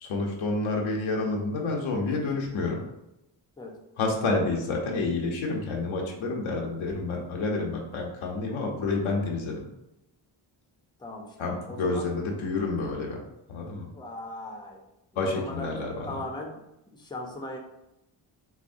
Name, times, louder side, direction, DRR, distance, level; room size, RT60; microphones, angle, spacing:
voice 1, 0.0-2.8 4.0-9.6 11.4-13.2 13.5-13.9 15.2-16.2, left 3 dB, 90° left, 0 dB, 0.9 m, -29 dB
voice 2, 11.0-11.3 11.7-12.1 13.9-14.8 15.2-16.6 16.9-17.6, left 1 dB, 10° left, 1 dB, 0.6 m, -38 dB
5.9 x 2.1 x 2.6 m, 0.87 s
cardioid pair, 90°, 46 cm